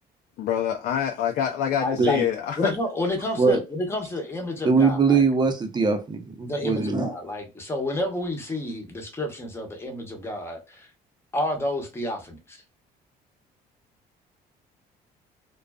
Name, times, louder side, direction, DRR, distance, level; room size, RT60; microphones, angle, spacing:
voice 1, 0.4-2.7, left 9 dB, 65° left, 0.5 m, -26 dB
voice 2, 1.8-2.3 2.6-5.2 6.4-10.9 11.3-12.6, left 1 dB, 15° left, 0.8 m, -30 dB
voice 3, 4.6-7.1, right 4 dB, 25° right, 0.7 m, -22 dB
2.4 x 2.2 x 2.2 m
cardioid pair, 110°, 17 cm